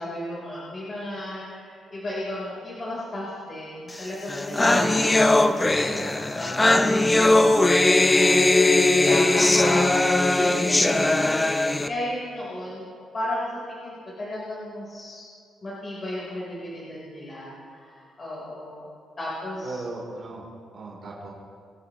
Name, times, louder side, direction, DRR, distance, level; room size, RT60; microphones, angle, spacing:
voice 1, 0.0-10.0 10.3-11.5 11.9-12.8 13.1-15.3 15.6-18.9 19.2-19.8, left 1 dB, 35° left, -7 dB, 3.8 m, -34 dB
sound 1, 4.0-4.1 4.3-11.9, left 2 dB, 15° left, 0.7 m, -19 dB
voice 2, 6.7-7.1 9.4-9.9 19.6-20.4 20.7-21.3, right 3 dB, 50° right, -3 dB, 3.4 m, -38 dB
24.0 x 9.8 x 3.1 m, 2.3 s
cardioid pair, 90°, 0 cm